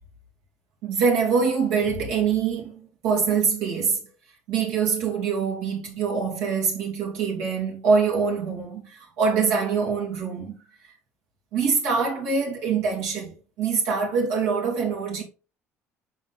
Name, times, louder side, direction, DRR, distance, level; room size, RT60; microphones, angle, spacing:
voice 1, 0.8-4.0 4.5-10.5 11.5-15.2, right 5 dB, 65° right, 2.7 m, -24 dB
5.9 x 4.9 x 4.1 m
figure-of-eight pair, 55°, 7 cm